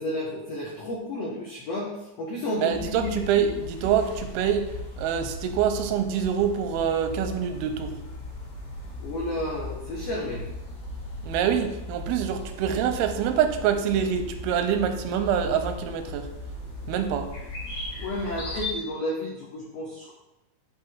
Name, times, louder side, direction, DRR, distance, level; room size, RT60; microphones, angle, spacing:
voice 1, 0.0-1.9 2.2-3.1 3.4-3.5 9.0-10.4 18.0-20.1, left 1 dB, 90° left, -3 dB, 1.4 m, -31 dB
voice 2, 2.6-4.7 5.0-8.0 11.2-16.3 16.9-17.3, right 8 dB, 90° right, 7 dB, 2.6 m, -25 dB
sound 1, 2.7-18.7, left 2 dB, 50° left, 2.2 m, -37 dB
8.8 x 3.6 x 4.6 m, 0.95 s
omnidirectional pair, 4.4 m